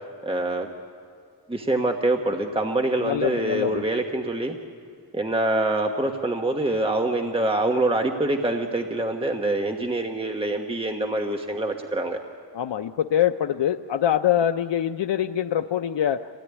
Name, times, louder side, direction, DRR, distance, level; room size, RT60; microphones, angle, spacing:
voice 1, 0.2-0.7 1.5-4.6 5.1-12.2, right 2 dB, 15° right, 3 dB, 1.3 m, -25 dB
voice 2, 3.0-3.8 12.5-16.3, left 10 dB, 90° left, 6 dB, 0.7 m, -24 dB
27.0 x 17.5 x 9.8 m, 2.4 s
wide cardioid pair, 125°, 42 cm